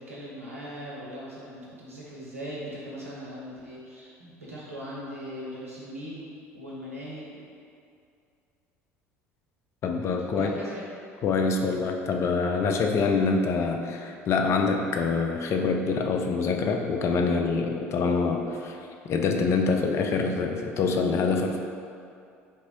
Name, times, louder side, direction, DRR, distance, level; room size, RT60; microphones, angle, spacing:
voice 1, 0.0-7.4 10.3-10.8, equal, 85° right, -6 dB, 0.7 m, -40 dB
voice 2, 9.8-10.5 11.2-18.8 19.0-21.6, left 4 dB, 40° left, 3 dB, 0.3 m, -25 dB
3.2 x 3.0 x 2.9 m, 2.4 s
figure-of-eight pair, 60°, 7 cm